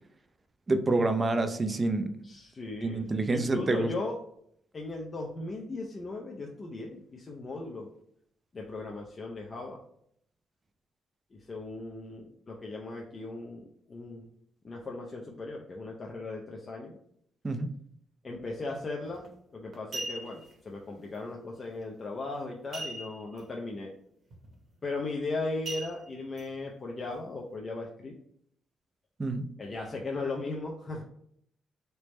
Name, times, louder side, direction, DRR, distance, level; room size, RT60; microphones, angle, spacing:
voice 1, 0.7-2.1 2.8-3.9 17.4-17.7 29.2-29.5, right 2 dB, 25° right, 7 dB, 0.3 m, -27 dB
voice 2, 2.2-4.2 4.7-7.9 8.5-9.8 11.3-14.3 14.6-17.0 18.2-23.9 24.8-28.1 29.6-31.0, left 3 dB, 35° left, -1 dB, 0.5 m, -37 dB
sound 1, 19.1-19.3 19.7-20.5 22.7-23.4 23.7-23.8 24.3-24.6 25.7-26.4 27.0-27.1, right 2 dB, 50° right, 0.9 m, -39 dB
3.2 x 2.0 x 4.2 m, 0.71 s
cardioid pair, 105°, 0 cm